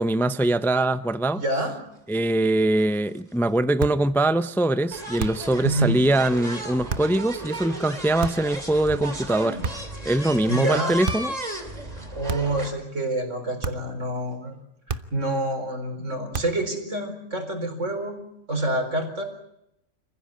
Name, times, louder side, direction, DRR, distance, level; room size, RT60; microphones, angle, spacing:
voice 1, 0.0-1.4 2.1-9.6 10.1-11.4, right 1 dB, ahead, 0.5 m, -22 dB
voice 2, 1.3-1.8 5.6-6.1 10.5-11.0 11.9-14.5 14.9-18.2 18.5-19.2, right 1 dB, 85° right, 4.7 m, -27 dB
sound 1, 2.4-2.5 2.7-2.9 3.9-4.0 4.9-12.7, right 1 dB, 30° right, 3.3 m, -34 dB
sound 2, 3.8-4.1 5.2-5.6 6.9-7.2 8.2-8.6 9.6-10.0 11.0-11.4 12.3-12.7 13.6-14.0 14.9-15.3 16.3-16.7, right 4 dB, 50° right, 1.1 m, -32 dB
28.5 x 15.5 x 8.7 m
omnidirectional pair, 1.2 m